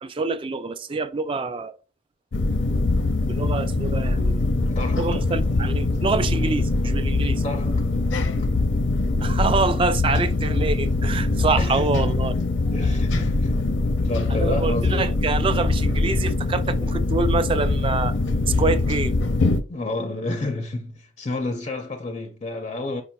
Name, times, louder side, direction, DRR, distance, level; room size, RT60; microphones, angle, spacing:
voice 1, 0.0-1.7 3.3-4.5 5.0-7.4 9.2-12.3 14.3-18.1 18.5-19.2, right 3 dB, 30° right, 0.3 m, -26 dB
sound 1, 2.3-19.6, left 2 dB, 85° left, 0.5 m, -23 dB
voice 2, 4.7-5.2 7.4-8.5 11.6-12.1 12.7-13.5 14.0-15.0 19.7-23.0, left 2 dB, 35° left, 0.4 m, -30 dB
5.0 x 4.2 x 2.2 m
head